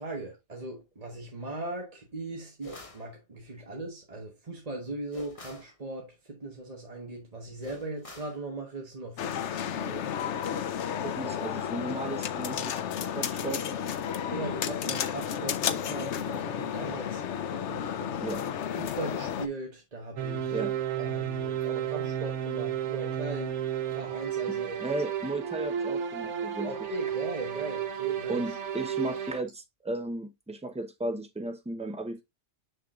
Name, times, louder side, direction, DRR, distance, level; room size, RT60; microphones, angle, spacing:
voice 1, 0.0-10.0 10.9-11.6 14.3-18.4 18.8-20.6 21.0-23.6 23.9-24.8 26.6-28.4, right 2 dB, 35° right, 1.3 m, -39 dB
sound 1, 2.6-3.1 5.1-5.7 7.6-8.4, left 1 dB, 30° left, 1.1 m, -45 dB
sound 2, 9.2-19.5, left 8 dB, 80° left, 1.0 m, -32 dB
voice 2, 11.0-12.8 13.1-13.6 18.2-18.4 20.5-20.7 24.5-26.7 28.3-32.2, right 2 dB, 5° right, 0.7 m, -35 dB
sound 3, 20.2-29.4, right 9 dB, 90° right, 1.1 m, -32 dB
6.6 x 5.9 x 2.4 m
omnidirectional pair, 1.2 m